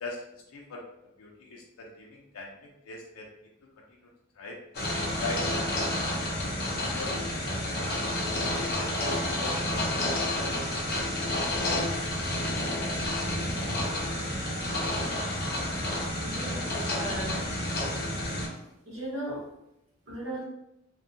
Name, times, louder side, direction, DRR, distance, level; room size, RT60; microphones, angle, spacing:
voice 1, 0.0-3.3 3.9-4.1 4.3-4.6 5.0-6.3 6.7-10.5, left 2 dB, 85° left, -1 dB, 0.5 m, -42 dB
sound 1, 4.7-18.5, left 1 dB, 45° left, 0.6 m, -30 dB
voice 2, 16.2-16.7 17.0-17.4 18.5-18.6 18.9-19.4 20.1-20.4, right 1 dB, 60° right, -7 dB, 1.4 m, -36 dB
2.7 x 2.3 x 2.6 m, 0.84 s
head